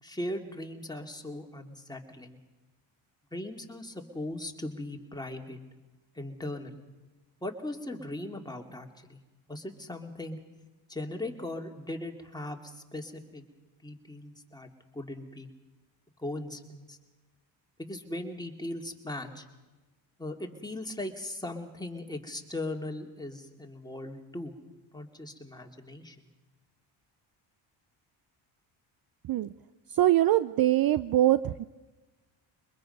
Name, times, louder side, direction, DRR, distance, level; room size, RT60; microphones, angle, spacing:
voice 1, 0.0-2.4 3.3-5.6 6.1-6.8 7.4-9.2 9.5-10.4 10.9-13.4 13.8-15.5 16.2-17.0 17.8-19.4 20.2-24.5 24.9-26.3, left 1 dB, 10° left, 2 dB, 2.4 m, -39 dB
voice 2, 30.0-31.6, right 14 dB, 50° right, 15 dB, 0.5 m, -23 dB
23.0 x 21.0 x 5.4 m, 1.2 s
supercardioid pair, 70°, 49 cm